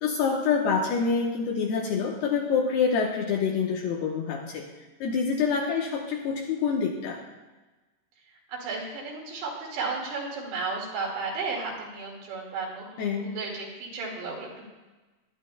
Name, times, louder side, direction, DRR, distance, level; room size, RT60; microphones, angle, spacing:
voice 1, 0.0-4.7 5.0-7.2 13.0-13.3, left 5 dB, 75° left, -1 dB, 2.6 m, -26 dB
voice 2, 8.5-14.6, right 4 dB, 65° right, -2 dB, 4.1 m, -34 dB
21.5 x 11.0 x 2.3 m, 1.2 s
omnidirectional pair, 5.5 m